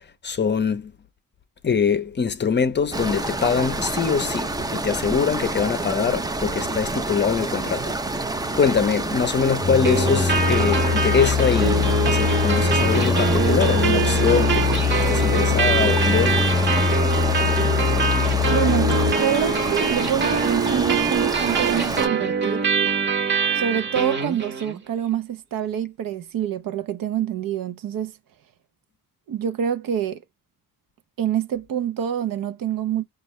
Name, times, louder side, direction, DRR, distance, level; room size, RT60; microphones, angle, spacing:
voice 1, 0.2-0.9 1.6-7.9 8.6-14.7 15.0-16.5, left 6 dB, 30° left, 0.6 m, -23 dB
sound 1, 2.9-22.1, right 2 dB, 10° right, 0.4 m, -28 dB
sound 2, 9.6-19.1, left 7 dB, 10° left, 0.9 m, -23 dB
sound 3, 9.8-24.8, right 5 dB, 30° right, 0.9 m, -24 dB
voice 2, 18.5-18.9 19.2-22.7 23.6-28.1 29.3-30.2 31.2-33.0, right 9 dB, 70° right, 0.7 m, -26 dB
5.3 x 2.4 x 3.1 m
cardioid pair, 115°, 35 cm